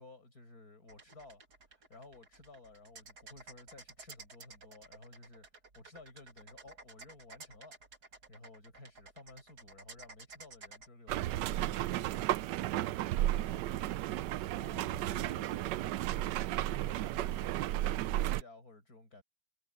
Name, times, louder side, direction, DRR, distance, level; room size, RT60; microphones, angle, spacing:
voice 1, 0.0-1.4 1.7-5.5 5.8-7.8 8.3-12.2 13.2-13.8 14.5-15.3 16.6-19.2, left 2 dB, 55° left, 8.1 m, -55 dB
sound 1, 0.9-10.9, right 3 dB, 60° right, 3.0 m, -54 dB
sound 2, 11.1-18.4, right 14 dB, 80° right, 1.2 m, -33 dB
voice 2, 13.3-16.3, left 3 dB, 85° left, 4.8 m, -60 dB
omnidirectional pair, 1.9 m